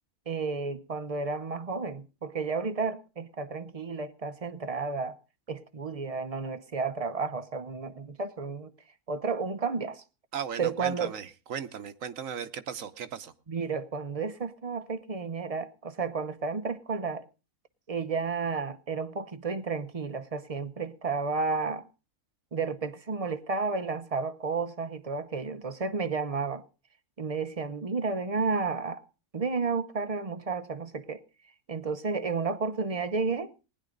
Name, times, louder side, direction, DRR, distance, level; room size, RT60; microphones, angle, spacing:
voice 1, 0.3-5.2 5.5-8.7 9.1-10.0 10.6-11.2 13.5-17.2 17.9-21.9 22.5-26.6 27.2-29.0 29.3-31.2 31.7-33.5, right 4 dB, 35° right, 0.6 m, -32 dB
voice 2, 10.3-13.3, right 8 dB, 65° right, 1.2 m, -37 dB
19.5 x 10.0 x 3.8 m
omnidirectional pair, 1.6 m